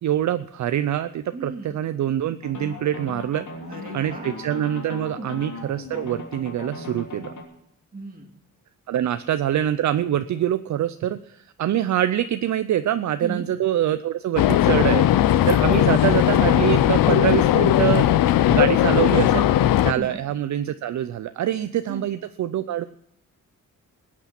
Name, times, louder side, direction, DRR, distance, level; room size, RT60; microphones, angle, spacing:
voice 1, 0.0-3.5 3.9-7.3 8.9-18.1 18.5-19.5 19.8-22.8, right 11 dB, 60° right, 11 dB, 0.5 m, -25 dB
voice 2, 1.3-1.7 3.7-4.3 5.0-5.3 7.9-8.3 13.2-13.4 19.9-20.2 21.9-22.0, right 3 dB, 25° right, 2 dB, 2.4 m, -35 dB
sound 1, 2.4-7.4, left 3 dB, 60° left, 3.0 m, -37 dB
sound 2, 14.4-19.9, left 12 dB, 85° left, 0.6 m, -18 dB
21.0 x 8.5 x 5.9 m, 0.72 s
wide cardioid pair, 140°, 33 cm